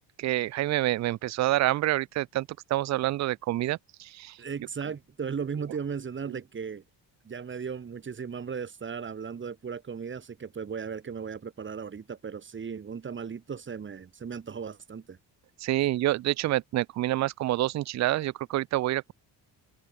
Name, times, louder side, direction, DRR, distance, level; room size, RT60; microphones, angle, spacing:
voice 1, 0.2-4.4 6.3-6.4 15.6-19.1, right 15 dB, 45° right, 0.4 m, -27 dB
voice 2, 4.4-6.8 7.2-15.2, right 6 dB, 25° right, 1.2 m, -36 dB
cardioid pair, 125°, 43 cm